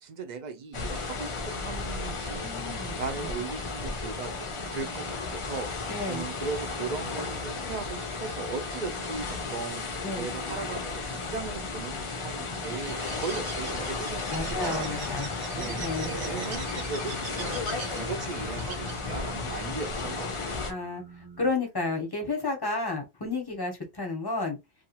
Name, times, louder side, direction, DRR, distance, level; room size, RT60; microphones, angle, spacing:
voice 1, 0.0-2.4 3.0-5.7 6.1-9.9 10.2-14.9 15.6-15.8 16.3-20.6, right 4 dB, 55° right, 0.5 m, -38 dB
sound 1, 0.7-20.7, left 4 dB, 45° left, 0.4 m, -34 dB
voice 2, 2.4-2.9 5.9-6.2 10.0-10.3 14.3-15.3 15.8-16.1 20.7-21.0 21.4-24.6, left 3 dB, 25° left, 0.8 m, -31 dB
sound 2, 3.4-21.5, right 3 dB, 10° right, 0.6 m, -51 dB
Bird, 12.7-19.3, right 4 dB, 85° right, 1.2 m, -40 dB
2.5 x 2.3 x 2.9 m
omnidirectional pair, 1.1 m